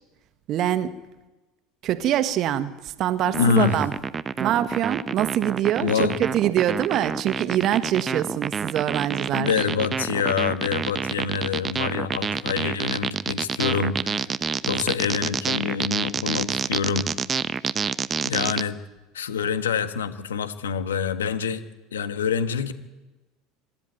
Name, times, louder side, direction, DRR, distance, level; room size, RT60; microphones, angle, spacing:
voice 1, 0.5-1.0 1.8-3.9 4.4-9.7, right 11 dB, 50° right, 1.5 m, -24 dB
voice 2, 3.2-3.8 5.8-6.2 9.3-14.3 14.7-17.1 18.2-18.8 19.1-21.6 21.9-22.7, left 6 dB, 80° left, 1.5 m, -26 dB
sound 1, 3.3-18.6, right 6 dB, 25° right, 0.8 m, -28 dB
25.5 x 12.5 x 9.3 m
figure-of-eight pair, 75°, 0 cm